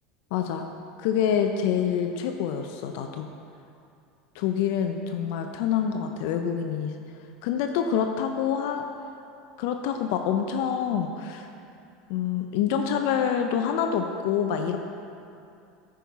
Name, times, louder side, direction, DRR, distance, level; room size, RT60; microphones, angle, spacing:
voice 1, 0.3-0.7 1.0-3.3 4.3-6.9 7.4-8.8 9.6-11.5 12.1-14.8, left 8 dB, 70° left, 5 dB, 0.5 m, -26 dB
9.3 x 5.6 x 4.2 m, 2.5 s
hypercardioid pair, 95°, 0 cm